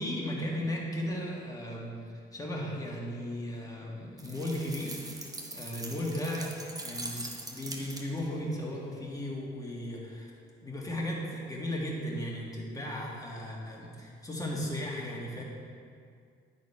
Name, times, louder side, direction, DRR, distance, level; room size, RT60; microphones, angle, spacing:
voice 1, 0.0-1.9 2.3-10.3 10.6-15.4, left 1 dB, 20° left, -3 dB, 1.9 m, -36 dB
sound 1, 4.2-8.4, right 2 dB, 20° right, 1.0 m, -42 dB
10.0 x 4.2 x 5.6 m, 2.2 s
cardioid pair, 90°, 20 cm